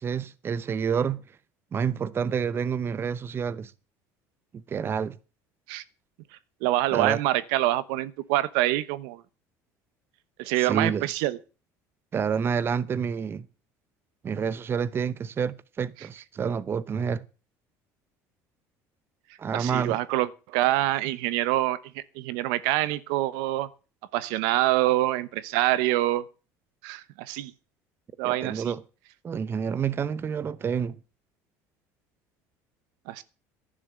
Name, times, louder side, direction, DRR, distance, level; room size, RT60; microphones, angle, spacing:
voice 1, 0.0-1.2 1.7-3.7 4.5-5.2 6.9-7.2 10.6-11.0 12.1-13.5 14.2-17.3 19.4-20.0 28.2-28.8 29.2-31.0, right 7 dB, 30° right, 0.8 m, -28 dB
voice 2, 6.6-9.2 10.4-11.4 16.0-16.1 19.5-23.7 24.1-26.2 26.8-27.5 28.2-28.7 33.1-33.2, right 16 dB, 85° right, 0.9 m, -26 dB
11.0 x 10.0 x 7.5 m
supercardioid pair, 110°, 7 cm